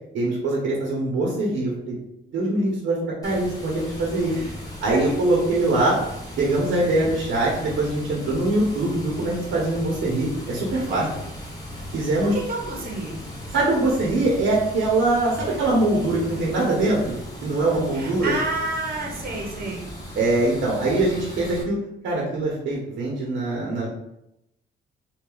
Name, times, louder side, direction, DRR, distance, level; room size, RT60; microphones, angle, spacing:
voice 1, 0.1-1.9 2.3-3.0 3.2-4.3 4.8-6.0 6.4-11.0 11.9-12.3 13.5-17.1 17.4-18.3 20.1-21.8 22.0-23.9, right 2 dB, 75° right, -4 dB, 1.1 m, -23 dB
Water, 3.2-21.6, left 1 dB, 20° left, 1.1 m, -37 dB
voice 2, 10.9-11.3 12.3-13.2 17.9-19.9, right 2 dB, 45° right, -1 dB, 1.1 m, -30 dB
3.4 x 2.7 x 3.9 m, 0.85 s
cardioid pair, 90°, 20 cm